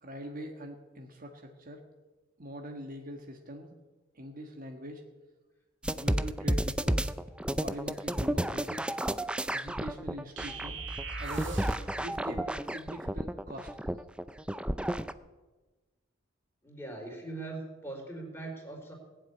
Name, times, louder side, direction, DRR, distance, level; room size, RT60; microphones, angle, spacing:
voice 1, 0.0-1.8 2.4-3.7 4.1-5.0 5.9-7.1 7.6-8.9 9.5-10.8 11.2-11.7 12.0-13.7, equal, 45° right, 4 dB, 1.5 m, -43 dB
sound 1, 5.8-15.1, right 1 dB, 5° right, 0.4 m, -32 dB
sound 2, 10.4-12.0, right 2 dB, 60° right, 2.2 m, -38 dB
voice 2, 16.6-18.9, right 2 dB, 10° left, 0 dB, 3.9 m, -41 dB
19.0 x 7.6 x 9.7 m, 1.2 s
head